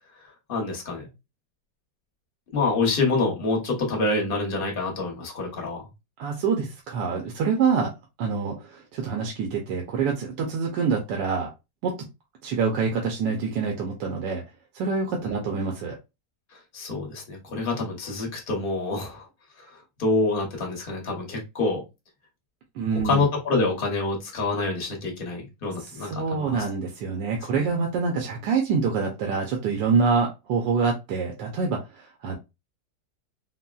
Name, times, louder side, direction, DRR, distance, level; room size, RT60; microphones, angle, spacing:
voice 1, 0.5-1.1 2.5-5.9 15.2-15.3 16.5-19.3 19.6-21.8 22.9-26.7 27.5-27.7, left 3 dB, 40° left, 0 dB, 0.8 m, -27 dB
voice 2, 6.2-7.9 8.2-11.5 11.8-11.9 12.4-14.4 14.7-16.0 22.8-23.2 25.8-32.4, right 5 dB, 80° right, 1 dB, 1.3 m, -26 dB
3.8 x 2.0 x 2.2 m, 0.25 s
omnidirectional pair, 1.9 m